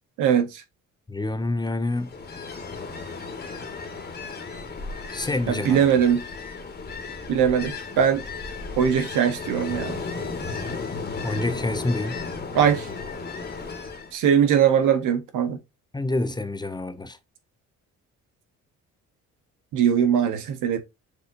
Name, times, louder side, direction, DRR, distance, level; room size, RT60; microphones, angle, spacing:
voice 1, 0.2-0.6 5.5-6.2 7.3-8.2 8.8-10.0 12.5-12.9 14.1-15.6 19.7-20.8, right 8 dB, 90° right, 1.0 m, -21 dB
voice 2, 1.1-2.1 5.1-5.9 11.2-12.2 15.9-17.2, left 2 dB, 15° left, 0.5 m, -27 dB
Ocean, 1.9-14.1, left 4 dB, 35° left, 1.2 m, -35 dB
6.5 x 2.7 x 2.5 m
cardioid pair, 90°, 30 cm